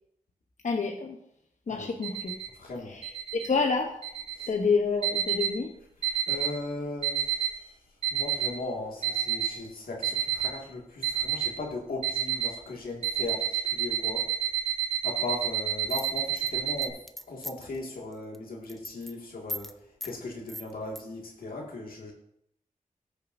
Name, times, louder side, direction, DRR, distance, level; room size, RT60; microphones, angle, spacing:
voice 1, 0.6-1.2 1.7-2.3 2.9-3.1 3.3-3.9 4.5-5.7, left 4 dB, 60° left, 2 dB, 0.9 m, -28 dB
sound 1, 2.0-2.5 3.0-3.5 4.0-4.5 5.0-5.6 6.0-6.6 7.0-7.6 8.0-8.6 9.0-9.6 10.0-10.6 11.0-11.6 12.0-12.6 13.0-16.9, right 10 dB, 45° right, 2.4 m, -29 dB
voice 2, 2.6-3.0 4.3-4.5 6.1-7.7 8.1-14.3 15.0-19.8 20.0-22.1, left 2 dB, 85° left, -1 dB, 2.0 m, -38 dB
sound 2, 15.9-17.8 18.1-18.4 18.6-19.1 19.5-19.7 20.0-20.2 20.5-21.0, equal, ahead, 0.6 m, -38 dB
15.0 x 6.6 x 2.6 m, 0.75 s
cardioid pair, 60°, 15 cm